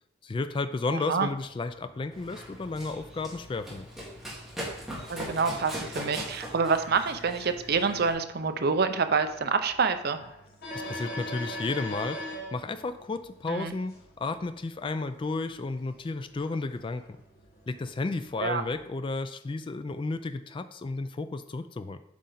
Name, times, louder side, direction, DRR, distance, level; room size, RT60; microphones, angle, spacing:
voice 1, 0.2-3.9 10.9-12.2 12.5-17.0 17.7-22.0, left 3 dB, 25° left, 10 dB, 0.3 m, -32 dB
voice 2, 0.9-1.3 5.1-10.2 13.5-13.7 18.4-18.6, right 5 dB, 50° right, 8 dB, 0.6 m, -27 dB
sound 1, 1.4-18.9, left 1 dB, 50° left, 1.8 m, -45 dB
Run, 2.1-8.1, equal, ahead, 1.9 m, -40 dB
8.3 x 5.0 x 4.0 m, 0.77 s
head